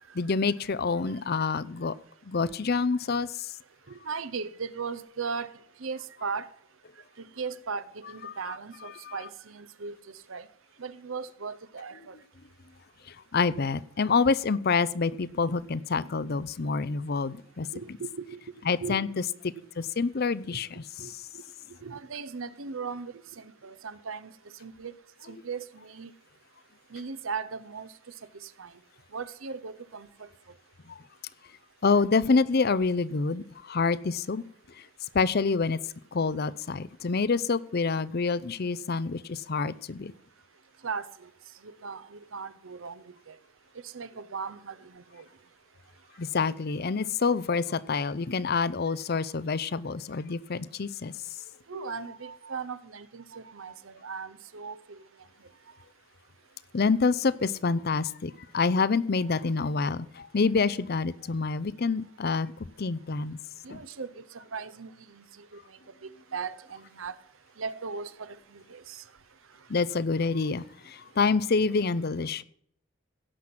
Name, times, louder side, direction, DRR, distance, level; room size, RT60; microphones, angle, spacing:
voice 1, 0.1-1.9 2.3-3.5 8.3-8.6 8.8-9.2 13.3-17.7 18.7-21.1 30.9-31.0 31.8-34.4 35.1-35.8 36.1-40.1 46.2-51.1 51.7-52.0 56.7-62.5 62.8-63.4 63.7-63.8 69.7-72.4, left 4 dB, 50° left, 0.6 m, -27 dB
voice 2, 3.9-5.5 5.8-6.5 7.2-10.5 10.8-12.2 17.7-18.4 18.8-19.0 19.5-19.7 20.5-20.6 21.0-21.1 21.8-24.9 25.3-26.1 26.9-27.9 28.3-28.8 29.1-30.3 40.8-41.3 41.6-43.4 43.8-45.3 51.7-55.0 59.3-59.4 63.6-67.2 67.6-69.0, right 5 dB, 75° right, 0.8 m, -38 dB
16.5 x 6.0 x 7.8 m
head